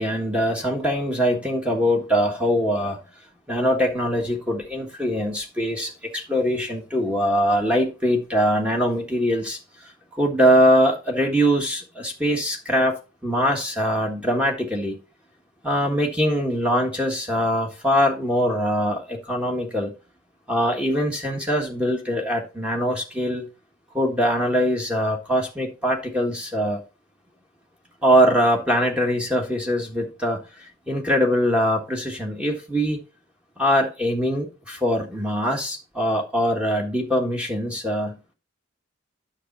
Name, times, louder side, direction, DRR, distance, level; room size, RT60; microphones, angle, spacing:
voice 1, 0.0-3.0 3.5-13.0 13.2-15.0 15.6-19.9 20.5-23.4 23.9-26.8 28.0-33.0 33.6-38.2, equal, 5° right, 1.5 m, -22 dB
9.9 x 6.3 x 4.1 m
head